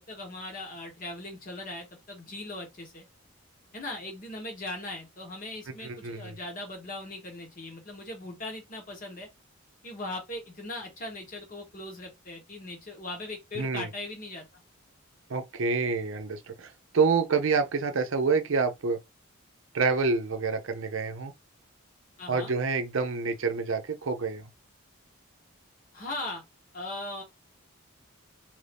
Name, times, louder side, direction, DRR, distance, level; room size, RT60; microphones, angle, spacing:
voice 1, 0.0-3.0 3.7-9.3 9.8-14.6 22.2-22.5 25.9-26.4 26.7-27.2, left 2 dB, 40° left, 1.1 m, -39 dB
voice 2, 5.8-6.4 13.5-13.9 15.3-19.0 19.7-21.3 22.3-24.5, right 4 dB, 65° right, 0.6 m, -27 dB
2.7 x 2.6 x 3.3 m
head